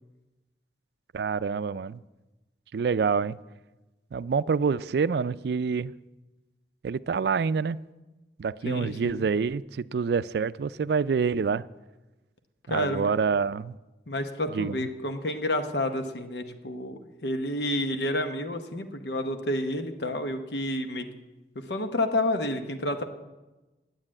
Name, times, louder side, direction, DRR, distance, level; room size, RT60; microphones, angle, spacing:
voice 1, 1.1-2.0 2.7-3.4 4.1-5.9 6.8-7.8 8.4-11.6 12.7-13.8 14.5-14.9, right 5 dB, 65° right, 18 dB, 0.3 m, -27 dB
voice 2, 8.6-9.3 12.7-13.1 14.1-21.0 21.5-23.0, left 1 dB, 75° left, 7 dB, 1.0 m, -30 dB
9.8 x 8.9 x 8.8 m, 1.1 s
head